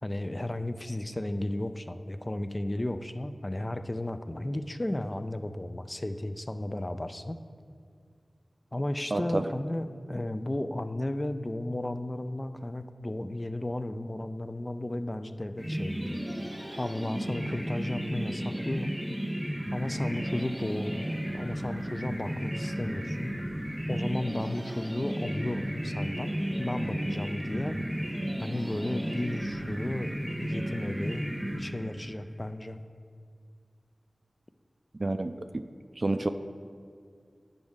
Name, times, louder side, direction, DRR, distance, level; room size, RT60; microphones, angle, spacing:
voice 1, 0.0-7.4 8.7-16.2 16.8-19.0 19.7-23.3 23.9-26.3 26.6-27.8 28.4-31.3 31.6-32.8, left 1 dB, 30° left, 10 dB, 0.4 m, -34 dB
voice 2, 9.1-9.5 35.0-35.7 36.0-36.3, right 2 dB, 50° right, 8 dB, 0.3 m, -29 dB
sound 1, 15.6-32.2, equal, 20° right, 1.1 m, -34 dB
9.7 x 5.2 x 3.6 m, 2.2 s
cardioid pair, 40°, 0 cm